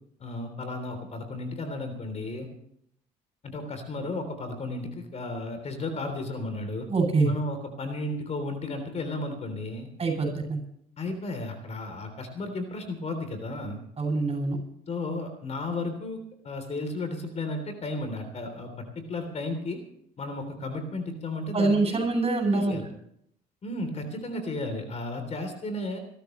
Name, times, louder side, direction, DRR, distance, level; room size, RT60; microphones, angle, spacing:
voice 1, 0.2-2.5 3.4-6.9 7.2-9.9 11.0-13.8 14.9-16.2 16.4-19.8 20.2-22.0 22.5-22.8 23.6-26.0, left 2 dB, 40° left, 7 dB, 3.5 m, -34 dB
voice 2, 6.9-7.3 10.0-10.6 14.0-14.6 21.5-22.8, right 3 dB, 35° right, 4 dB, 8.0 m, -24 dB
27.0 x 13.5 x 3.2 m, 0.70 s
cardioid pair, 90°, 16 cm